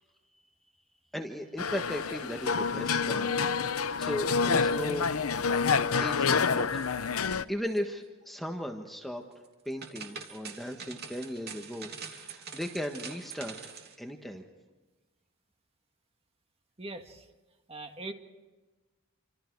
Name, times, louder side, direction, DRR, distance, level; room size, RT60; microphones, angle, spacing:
voice 1, 1.1-3.3 3.7-5.1 6.0-6.7 7.1-9.3 9.6-14.4, equal, ahead, 3 dB, 1.5 m, -37 dB
sound 1, 1.6-7.4, left 5 dB, 85° left, 0.8 m, -28 dB
sound 2, 4.5-5.5 5.8-6.2 6.5-7.4 7.7-7.8 9.4-14.0, right 6 dB, 50° right, 3.1 m, -45 dB
voice 2, 16.8-17.3 17.7-18.1, right 2 dB, 30° right, 5 dB, 2.0 m, -41 dB
28.5 x 26.0 x 4.8 m, 1.2 s
head